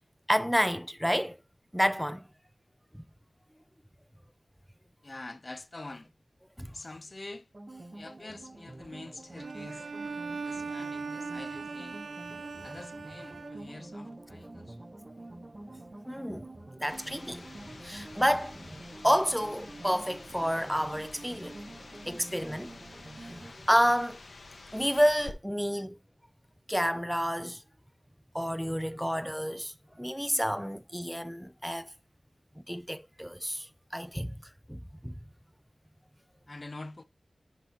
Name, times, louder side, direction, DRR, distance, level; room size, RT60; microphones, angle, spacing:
voice 1, 0.3-1.4 1.7-2.3 2.9-3.0 6.6-6.7 16.1-16.5 16.8-17.5 17.8-18.6 19.0-21.5 22.1-22.7 23.2-24.2 24.7-26.0 26.7-27.6 28.3-31.9 32.6-34.4 34.7-35.1, equal, ahead, 0.5 m, -29 dB
voice 2, 5.0-6.1 6.7-7.5 7.9-9.9 10.4-12.0 12.6-14.9 25.7-25.9 36.5-37.0, left 2 dB, 40° left, 0.6 m, -45 dB
sound 1, 7.5-23.5, right 2 dB, 35° right, 1.0 m, -47 dB
Bowed string instrument, 9.4-14.0, right 4 dB, 75° right, 0.9 m, -39 dB
sound 2, 16.9-25.3, left 3 dB, 70° left, 1.3 m, -49 dB
10.0 x 5.7 x 2.9 m
wide cardioid pair, 70°, 0 cm